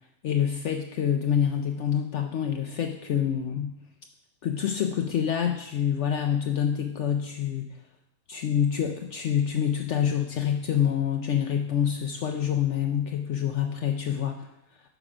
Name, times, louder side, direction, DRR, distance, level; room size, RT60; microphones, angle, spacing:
voice 1, 0.2-3.7 4.4-7.6 8.3-14.5, left 9 dB, 65° left, 4 dB, 0.8 m, -26 dB
6.7 x 6.0 x 4.9 m, 0.83 s
omnidirectional pair, 1.5 m